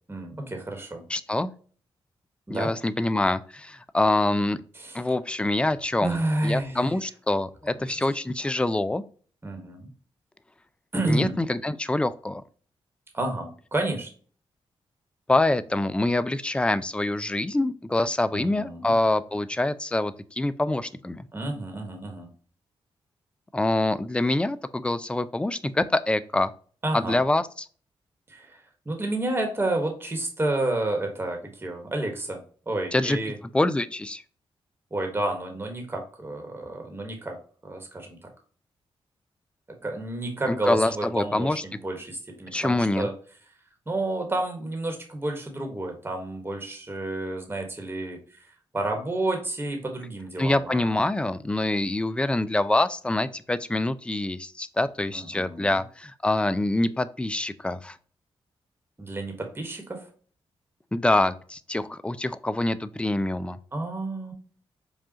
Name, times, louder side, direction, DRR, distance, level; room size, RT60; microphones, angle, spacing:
voice 1, 0.1-1.0 2.5-2.7 4.7-5.0 6.0-6.9 7.9-8.0 9.4-9.9 10.9-11.4 13.1-14.1 18.3-18.9 21.3-22.3 26.8-27.2 28.3-32.4 32.7-33.4 34.9-37.4 37.6-38.2 39.8-43.1 43.9-48.4 48.7-50.9 55.1-55.8 59.0-60.1 63.7-64.3, right 2 dB, 20° right, 3 dB, 1.3 m, -30 dB
voice 2, 1.1-1.5 2.5-4.6 4.9-9.0 11.1-12.4 15.3-21.3 23.5-26.5 26.9-27.7 32.9-33.2 33.5-34.2 40.5-41.6 42.5-43.1 50.4-58.0 60.9-63.6, left 2 dB, 10° left, 13 dB, 0.4 m, -25 dB
4.9 x 2.4 x 2.7 m, 0.43 s
cardioid pair, 65°, 10 cm